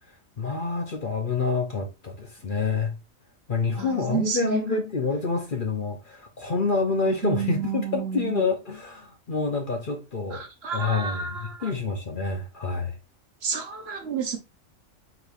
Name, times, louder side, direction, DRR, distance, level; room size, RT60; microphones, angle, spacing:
voice 1, 0.4-3.0 3.5-10.5 10.7-13.0, left 4 dB, 45° left, 0.9 m, -27 dB
voice 2, 4.1-4.6 7.2-8.3 10.3-11.7 13.4-14.4, right 7 dB, 55° right, 1.0 m, -30 dB
5.1 x 4.0 x 2.6 m
omnidirectional pair, 1.4 m